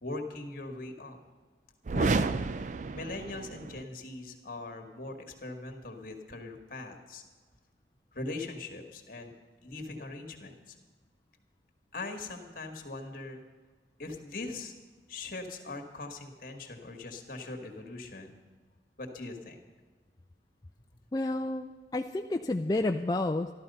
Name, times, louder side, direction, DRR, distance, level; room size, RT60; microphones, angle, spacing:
voice 1, 0.0-1.2 1.9-2.4 2.9-7.2 8.1-9.3 9.6-10.8 11.9-13.4 14.0-14.7 15.1-18.4 19.0-19.6, left 2 dB, 50° left, 4 dB, 1.7 m, -41 dB
sound 1, 1.8-3.9, right 3 dB, 40° right, 0.4 m, -31 dB
voice 2, 21.1-23.5, left 2 dB, 20° left, 3 dB, 0.4 m, -30 dB
13.5 x 12.5 x 5.5 m, 1.5 s
head